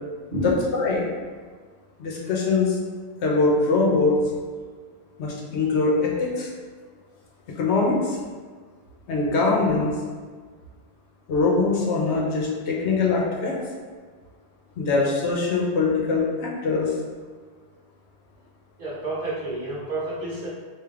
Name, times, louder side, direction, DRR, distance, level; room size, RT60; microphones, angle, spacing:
voice 1, 0.3-1.1 2.0-2.8 3.2-4.2 5.2-6.5 7.6-8.2 9.1-9.9 11.3-13.6 14.8-16.9, left 3 dB, 80° left, -2 dB, 1.0 m, -22 dB
voice 2, 18.8-20.5, right 1 dB, 55° right, -6 dB, 1.0 m, -29 dB
3.3 x 2.6 x 3.6 m, 1.5 s
omnidirectional pair, 1.2 m